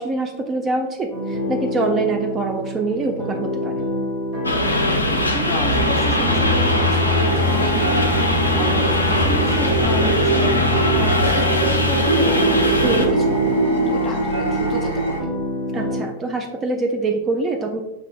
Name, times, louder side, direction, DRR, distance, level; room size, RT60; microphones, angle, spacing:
voice 1, 0.0-3.9 12.8-13.1 15.7-17.8, right 3 dB, 25° right, 3 dB, 0.3 m, -24 dB
sound 1, 1.1-16.0, left 2 dB, 45° right, 1.4 m, -26 dB
sound 2, 4.4-13.1, left 1 dB, 85° left, 0.4 m, -21 dB
voice 2, 5.2-10.6 10.9-15.3, left 1 dB, 25° left, 1 dB, 0.9 m, -31 dB
sound 3, 5.7-15.2, right 3 dB, 75° right, 0.8 m, -23 dB
5.1 x 2.4 x 2.3 m, 1.0 s
figure-of-eight pair, 90°, 0 cm